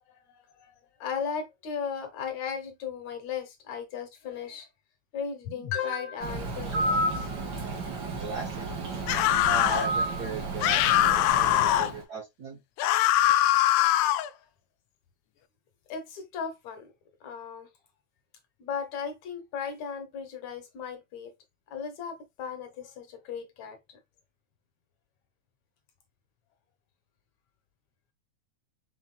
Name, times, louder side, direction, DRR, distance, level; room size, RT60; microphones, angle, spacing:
voice 1, 0.1-0.7 1.0-4.7 5.1-7.3 7.6-7.9 9.0-9.1 15.9-16.9 17.2-17.7 18.6-21.3 21.7-24.0, left 7 dB, 70° left, 2.4 m, -36 dB
Bird, 6.2-12.0, right 2 dB, 45° right, 1.6 m, -32 dB
voice 2, 8.2-8.7 9.4-12.6, right 4 dB, 70° right, 0.9 m, -37 dB
sound 1, 9.1-9.9 10.6-11.9 12.8-14.3, left 14 dB, 90° left, 2.1 m, -22 dB
5.6 x 4.3 x 2.2 m
omnidirectional pair, 3.4 m